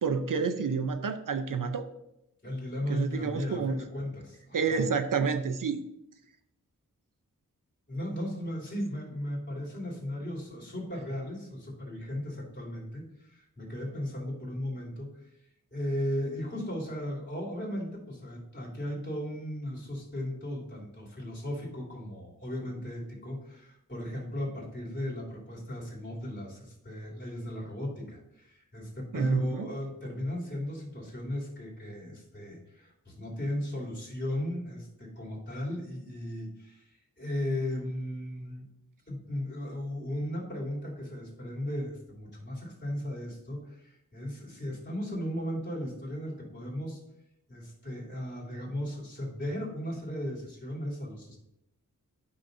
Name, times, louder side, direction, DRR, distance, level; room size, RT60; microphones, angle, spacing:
voice 1, 0.0-1.9 2.9-3.8 4.5-5.8 29.1-29.7, right 5 dB, 70° right, 8 dB, 0.7 m, -29 dB
voice 2, 2.4-4.8 7.9-15.1 15.7-36.8 37.2-38.6 39.1-47.0 47.5-51.4, left 1 dB, 35° left, -6 dB, 3.3 m, -36 dB
12.0 x 6.3 x 2.7 m, 0.84 s
wide cardioid pair, 75°, 34 cm